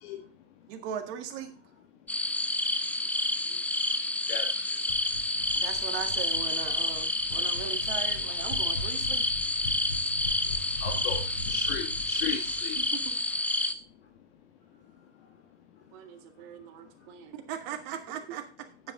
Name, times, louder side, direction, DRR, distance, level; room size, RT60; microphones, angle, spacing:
voice 1, 0.7-1.5 5.5-9.3 12.8-13.1 15.9-18.4, right 9 dB, 50° right, 6 dB, 1.9 m, -39 dB
sound 1, 2.1-13.7, left 2 dB, 5° left, 0.6 m, -29 dB
voice 2, 3.5-3.9 8.3-8.4 10.3-11.1 14.9-15.3 15.8-15.9 16.5-17.1, left 4 dB, 30° left, -2 dB, 2.4 m, -62 dB
sound 2, 4.9-13.6, left 1 dB, 90° left, 3.5 m, -41 dB
voice 3, 10.8-11.2 11.5-12.8, left 8 dB, 55° left, 3 dB, 1.6 m, -35 dB
9.4 x 7.8 x 3.8 m, 0.37 s
figure-of-eight pair, 90°, 36 cm